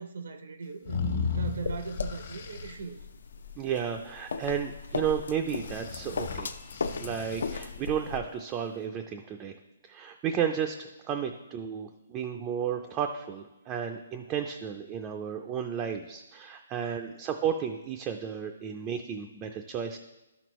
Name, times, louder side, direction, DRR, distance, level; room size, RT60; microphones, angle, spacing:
voice 1, 0.0-3.0, right 5 dB, 75° right, 9 dB, 0.6 m, -38 dB
sound 1, 0.8-2.7 5.5-7.6, left 7 dB, 55° left, 1.1 m, -35 dB
sound 2, 1.5-8.2, left 4 dB, 75° left, 0.5 m, -37 dB
voice 2, 3.6-9.6 9.8-20.0, right 8 dB, 15° right, 4 dB, 0.3 m, -33 dB
12.0 x 6.1 x 3.0 m, 1.0 s
hypercardioid pair, 165°, 0 cm